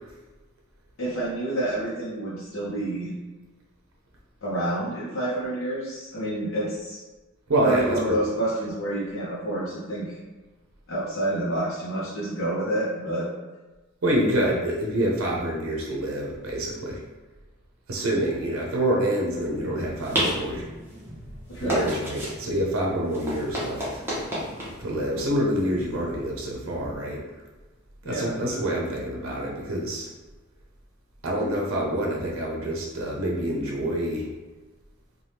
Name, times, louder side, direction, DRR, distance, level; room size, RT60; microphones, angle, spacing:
voice 1, 1.0-3.1 4.4-7.0 7.6-10.1 10.9-13.3 21.5-21.9 28.0-28.4, right 1 dB, 70° left, -8 dB, 0.7 m, -28 dB
voice 2, 7.5-8.0 14.0-17.0 17.9-20.6 21.6-24.0 24.8-27.4 28.0-30.1 31.2-34.3, right 1 dB, 85° right, -2 dB, 0.6 m, -27 dB
sound 1, 19.4-26.9, equal, 10° right, 0.8 m, -33 dB
3.3 x 2.2 x 2.7 m, 1.2 s
head